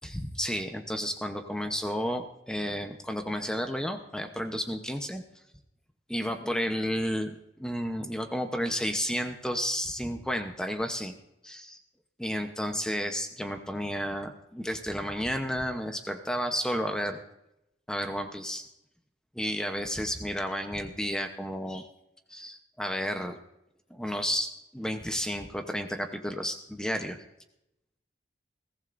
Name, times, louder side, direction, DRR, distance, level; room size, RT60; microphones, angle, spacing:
voice 1, 0.0-5.2 6.1-11.2 11.4-11.8 12.2-17.2 17.9-18.6 19.3-21.9 22.3-23.4 23.9-27.2, equal, 5° left, 5 dB, 0.8 m, -32 dB
21.5 x 16.0 x 2.6 m, 0.84 s
head